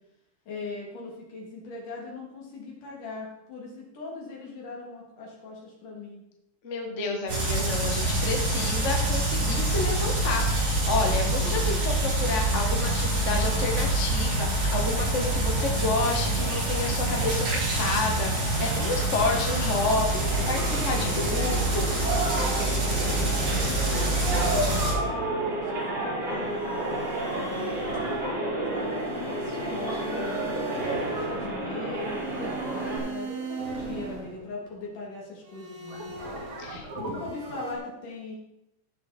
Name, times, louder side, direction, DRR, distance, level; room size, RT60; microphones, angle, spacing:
voice 1, 0.5-6.2 22.8-25.0 25.3-27.9 28.7-36.1 36.9-38.4, left 3 dB, 75° left, -3 dB, 4.6 m, -40 dB
voice 2, 6.6-17.5 17.8-22.1 36.6-36.9, left 3 dB, 35° left, 1 dB, 1.3 m, -30 dB
sound 1, 7.3-24.9, right 2 dB, 80° right, 6.9 m, -26 dB
sound 2, 20.2-33.0, right 2 dB, 45° right, 4.7 m, -31 dB
sound 3, 26.4-34.9 35.4-37.7, right 1 dB, 60° right, 3.6 m, -38 dB
16.5 x 6.8 x 4.4 m, 0.86 s
omnidirectional pair, 3.7 m